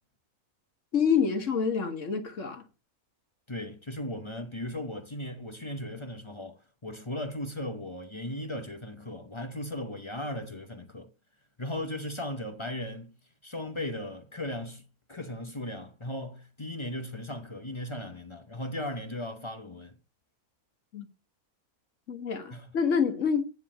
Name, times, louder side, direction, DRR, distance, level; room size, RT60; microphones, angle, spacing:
voice 1, 0.9-2.7 20.9-21.1 22.1-23.5, left 6 dB, 55° left, 1.6 m, -27 dB
voice 2, 3.5-11.1 11.6-13.1 13.4-14.8 15.1-20.0 22.5-22.7, left 1 dB, 25° left, 0.7 m, -37 dB
9.6 x 4.8 x 7.1 m
omnidirectional pair, 1.6 m